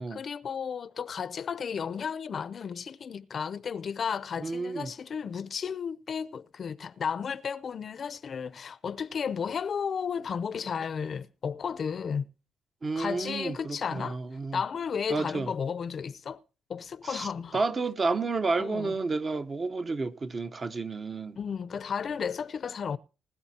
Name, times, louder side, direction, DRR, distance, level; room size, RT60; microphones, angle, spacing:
voice 1, 0.1-12.3 13.0-14.2 14.5-16.4 16.7-17.6 18.6-19.0 21.4-23.0, left 6 dB, 50° left, 0.6 m, -33 dB
voice 2, 4.4-4.9 12.8-14.6 15.1-15.5 17.0-21.4, right 3 dB, 35° right, 0.9 m, -31 dB
20.0 x 12.5 x 2.8 m
cardioid pair, 90°, 0 cm